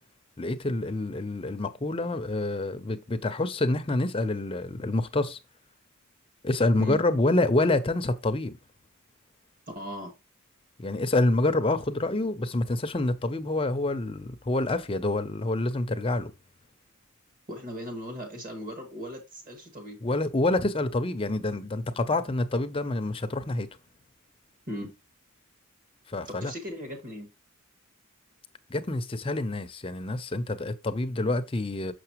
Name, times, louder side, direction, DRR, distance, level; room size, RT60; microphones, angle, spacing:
voice 1, 0.4-5.4 6.4-8.6 10.8-16.3 20.0-23.7 26.1-26.5 28.7-31.9, left 2 dB, 25° left, 0.6 m, -27 dB
voice 2, 9.8-10.1 17.5-20.0 24.7-24.9 26.3-27.3, equal, 40° right, 1.9 m, -37 dB
6.5 x 5.8 x 3.0 m
head